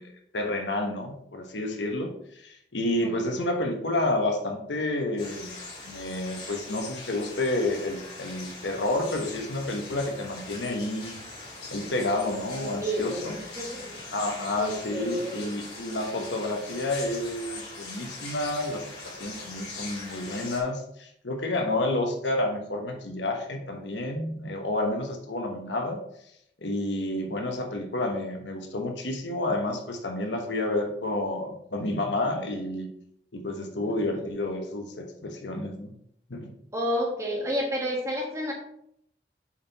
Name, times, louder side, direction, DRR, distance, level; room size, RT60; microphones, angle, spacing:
voice 1, 0.0-5.5 5.8-11.2 11.7-13.4 14.1-26.0 26.6-32.9 33.3-35.9 36.3-36.5, left 2 dB, 85° left, 4 dB, 1.1 m, -30 dB
voice 2, 3.0-3.5 12.5-14.0 14.5-15.5 33.8-34.3 36.7-38.5, equal, 15° right, -1 dB, 1.4 m, -31 dB
sound 1, 5.2-20.6, left 3 dB, 60° left, 3.0 m, -41 dB
7.1 x 4.6 x 4.1 m, 0.72 s
head